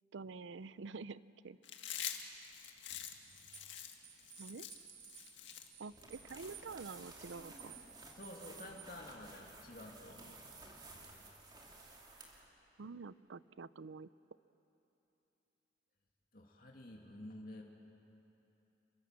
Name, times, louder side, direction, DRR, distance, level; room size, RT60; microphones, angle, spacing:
voice 1, 0.1-1.6 4.4-4.7 5.8-7.7 12.8-14.1, right 4 dB, 90° right, 17 dB, 0.5 m, -48 dB
Chewing mastication, 1.6-7.1, left 10 dB, 90° left, 1.9 m, -46 dB
sound 1, 1.9-8.9, right 9 dB, 45° right, 2.1 m, -58 dB
sound 2, 5.9-12.5, right 2 dB, 25° right, 3.0 m, -55 dB
voice 2, 8.2-10.4 10.9-11.2 16.3-17.6, left 1 dB, 50° left, 0 dB, 2.4 m, -51 dB
29.5 x 23.5 x 7.5 m, 3.0 s
head